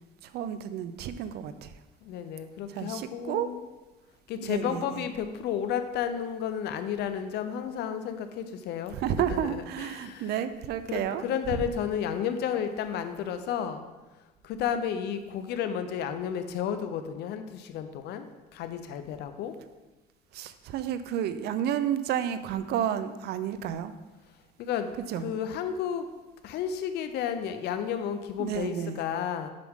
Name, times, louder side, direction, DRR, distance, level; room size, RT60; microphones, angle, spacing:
voice 1, 0.2-1.7 2.7-3.5 4.4-5.0 8.9-11.2 20.3-23.9 25.1-25.3 28.4-29.0, right 10 dB, 75° right, 12 dB, 0.5 m, -31 dB
voice 2, 2.0-3.6 4.3-9.0 9.3-10.3 10.9-13.9 14.4-18.3 18.5-19.5 24.6-26.1 26.4-29.5, left 8 dB, 80° left, 9 dB, 0.7 m, -32 dB
7.6 x 6.2 x 3.6 m, 1.1 s
cardioid pair, 110°, 17 cm